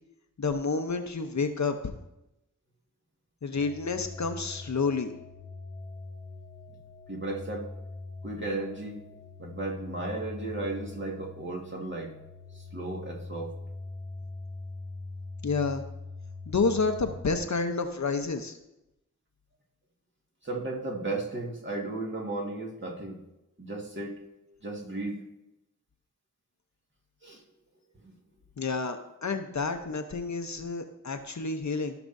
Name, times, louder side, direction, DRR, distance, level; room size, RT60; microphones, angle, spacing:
voice 1, 0.4-1.8 3.4-5.1 15.4-15.8 16.5-18.5 28.6-31.9, left 4 dB, 60° left, 7 dB, 0.8 m, -29 dB
sound 1, 3.6-17.2, left 3 dB, 30° left, 1.1 m, -43 dB
voice 2, 7.1-7.7 8.2-9.0 9.4-12.1 12.5-13.5 20.4-23.2 23.6-24.2 24.6-25.2 27.2-27.4, right 2 dB, 35° right, -1 dB, 1.9 m, -35 dB
15.0 x 5.9 x 2.7 m, 0.91 s
cardioid pair, 50°, 33 cm